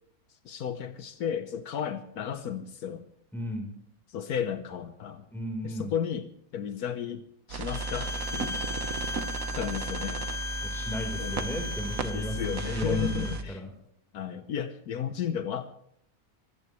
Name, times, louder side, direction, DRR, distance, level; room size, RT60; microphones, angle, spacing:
voice 1, 0.4-3.1 4.1-5.3 5.6-8.6 9.5-10.3 11.2-11.5 12.1-13.6 14.1-15.8, left 8 dB, 75° left, 10 dB, 1.4 m, -34 dB
voice 2, 3.3-3.7 5.3-5.9 10.6-13.7, left 1 dB, ahead, 3 dB, 3.8 m, -34 dB
sound 1, 7.5-13.4, right 4 dB, 65° right, 1.6 m, -35 dB
Bowed string instrument, 7.7-13.4, left 3 dB, 50° left, 0.3 m, -38 dB
25.0 x 14.0 x 3.1 m, 0.69 s
omnidirectional pair, 1.6 m